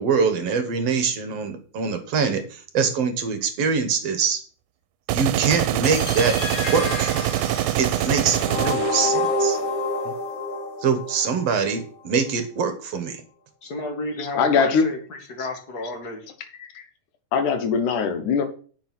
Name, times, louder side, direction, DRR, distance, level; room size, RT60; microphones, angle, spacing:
voice 1, 0.0-4.4 5.1-6.3 6.7-7.2 7.8-9.6 10.0-10.1 10.8-13.2, right 6 dB, 65° right, 8 dB, 2.0 m, -24 dB
sound 1, 5.1-9.1, right 13 dB, 85° right, 2.0 m, -24 dB
sound 2, 5.8-11.8, left 2 dB, 70° left, 0.8 m, -28 dB
voice 2, 13.6-16.3, left 2 dB, 40° left, 5 dB, 1.7 m, -32 dB
voice 3, 14.2-14.9 16.6-16.8 17.3-18.5, left 5 dB, 90° left, 9 dB, 2.8 m, -21 dB
9.8 x 5.6 x 6.0 m, 0.42 s
omnidirectional pair, 3.5 m